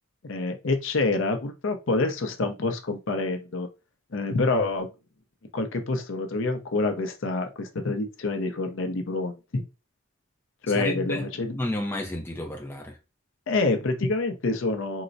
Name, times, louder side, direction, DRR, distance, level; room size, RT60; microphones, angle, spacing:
voice 1, 0.3-3.7 4.1-4.9 5.5-9.6 10.6-11.6 13.5-15.0, left 3 dB, 65° left, 0.6 m, -27 dB
voice 2, 10.7-11.3 11.5-13.0, left 1 dB, 10° left, 0.4 m, -31 dB
3.7 x 2.0 x 2.5 m
head